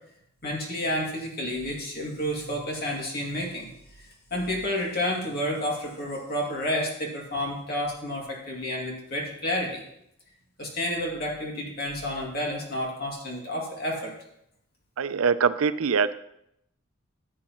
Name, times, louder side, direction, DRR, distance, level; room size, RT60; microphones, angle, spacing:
voice 1, 0.4-3.7 4.0-9.8 10.6-14.1, left 1 dB, 45° left, -2 dB, 2.4 m, -30 dB
voice 2, 15.0-16.1, right 5 dB, 80° right, 14 dB, 0.5 m, -23 dB
14.5 x 8.3 x 3.0 m, 0.77 s
head